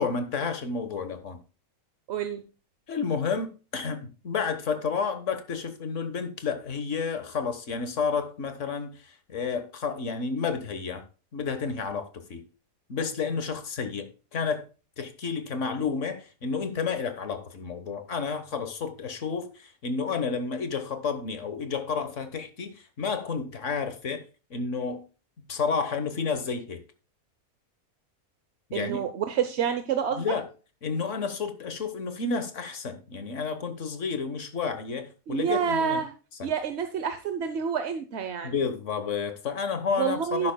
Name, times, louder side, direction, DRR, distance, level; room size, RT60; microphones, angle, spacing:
voice 1, 0.0-1.4 2.9-11.0 11.3-12.5 12.9-14.6 15.0-24.2 24.5-25.0 25.5-26.8 28.7-29.0 30.2-30.4 30.8-36.0 36.4-36.5 38.4-40.5, left 5 dB, 55° left, 1.5 m, -31 dB
voice 2, 2.1-2.4 28.7-30.3 35.3-36.1 36.4-38.5 40.0-40.5, right 7 dB, 55° right, 1.0 m, -28 dB
11.5 x 10.0 x 2.2 m
omnidirectional pair, 1.5 m